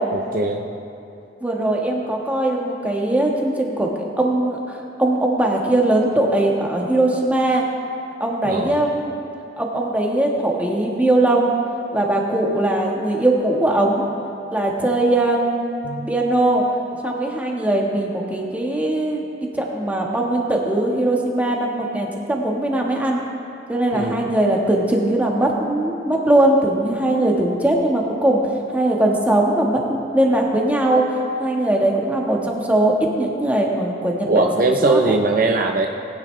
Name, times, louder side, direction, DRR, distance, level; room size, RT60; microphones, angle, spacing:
voice 1, 0.3-0.6 8.4-8.8 15.8-16.1 23.9-24.3 34.3-35.9, right 2 dB, 55° right, 3 dB, 0.6 m, -20 dB
voice 2, 1.4-7.6 8.2-9.1 9.6-11.6 11.9-14.0 14.5-16.6 17.0-19.2 19.5-23.2 23.7-28.4 28.7-31.0 31.4-34.5 34.8-35.1, right 1 dB, 10° right, -1 dB, 1.4 m, -20 dB
19.0 x 10.0 x 3.3 m, 2.7 s
head